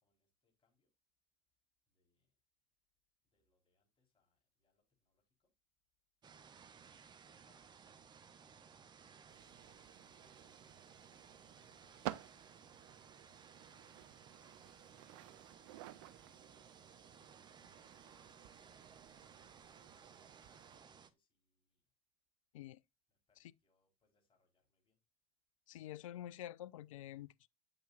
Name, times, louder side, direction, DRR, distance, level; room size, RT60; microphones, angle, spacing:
voice 1, 0.0-0.9 1.9-2.3 3.3-5.5 7.4-10.7 11.5-13.4 13.8-15.0 15.9-16.8 17.7-18.6 20.9-21.8 23.3-25.0, left 4 dB, 30° left, 3.9 m, -83 dB
sound 1, 6.2-21.1, right 6 dB, 25° right, 0.8 m, -60 dB
sound 2, 9.3-20.8, right 15 dB, 55° right, 0.5 m, -53 dB
voice 2, 25.7-27.5, left 12 dB, 65° left, 0.4 m, -48 dB
8.7 x 7.9 x 2.4 m
figure-of-eight pair, 70°, 18 cm